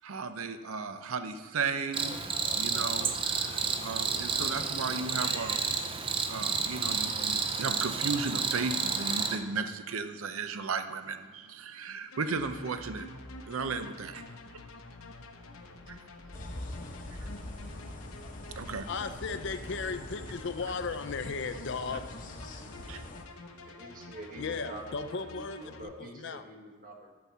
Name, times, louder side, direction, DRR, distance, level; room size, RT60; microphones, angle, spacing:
voice 1, 0.0-2.2 2.5-5.7 6.3-13.1 13.5-14.2 15.9-16.0 17.2-17.3 18.6-18.9 22.9-23.0, right 4 dB, 80° right, 9 dB, 0.6 m, -35 dB
Cricket, 1.9-9.4, right 5 dB, 25° right, 0.6 m, -31 dB
sound 1, 12.1-25.8, left 2 dB, 80° left, 0.9 m, -48 dB
sound 2, 16.3-23.2, left 1 dB, 40° left, 0.9 m, -44 dB
voice 2, 18.9-22.1 24.4-26.4, left 4 dB, 60° left, 11 dB, 0.5 m, -36 dB
voice 3, 23.6-25.3 25.6-27.1, right 1 dB, 40° right, 0 dB, 1.4 m, -46 dB
11.5 x 4.3 x 7.3 m, 1.5 s
head